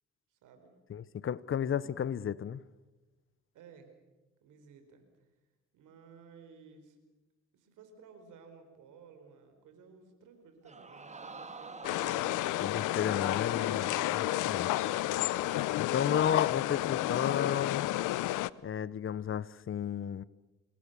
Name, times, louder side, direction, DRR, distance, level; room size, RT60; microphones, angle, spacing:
voice 1, 0.3-0.7 3.5-3.9 4.4-5.0 5.7-7.0 7.5-12.3, right 5 dB, 85° right, 4.7 m, -56 dB
voice 2, 0.9-2.6 12.6-14.7 15.8-17.9 18.6-20.2, left 8 dB, 45° left, 0.8 m, -33 dB
Crowd, 10.6-16.1 16.5-16.6, right 3 dB, 25° right, 1.9 m, -49 dB
sound 1, 11.8-18.5, left 16 dB, 85° left, 0.7 m, -31 dB
26.5 x 21.5 x 6.9 m
cardioid pair, 90°, 30 cm